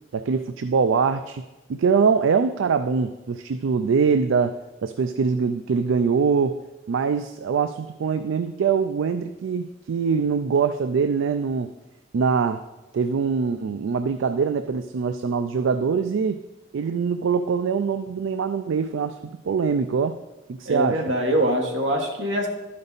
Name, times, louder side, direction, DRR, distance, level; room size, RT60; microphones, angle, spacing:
voice 1, 0.1-1.4 1.7-4.5 4.8-6.6 6.9-11.7 12.1-12.6 12.9-16.4 16.7-19.2 19.4-20.2 20.5-21.0, right 5 dB, 85° right, 9 dB, 0.4 m, -23 dB
voice 2, 20.6-22.5, equal, 70° right, 2 dB, 1.4 m, -23 dB
12.0 x 5.3 x 4.0 m, 1.1 s
head